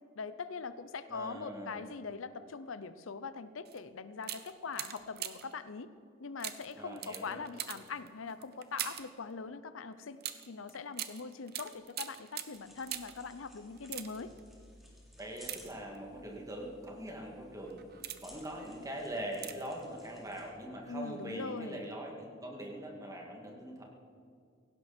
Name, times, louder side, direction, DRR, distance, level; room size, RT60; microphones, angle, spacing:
voice 1, 0.2-5.9 6.2-10.2 10.5-14.3 20.9-21.8, left 4 dB, 80° left, 13 dB, 0.7 m, -42 dB
voice 2, 1.1-1.8 6.8-7.4 15.2-17.8 18.2-23.8, right 1 dB, 15° right, 0 dB, 2.5 m, -42 dB
sound 1, 3.6-3.8 4.2-5.6 6.4-9.2 10.2-13.3 13.7-14.4 15.4-16.2 16.9-17.1 17.7-18.5 19.3-19.8 20.1-20.2, right 11 dB, 50° right, 0.9 m, -43 dB
sound 2, 12.5-20.5, left 1 dB, ahead, 3.4 m, -59 dB
17.5 x 16.5 x 4.4 m, 2.3 s
head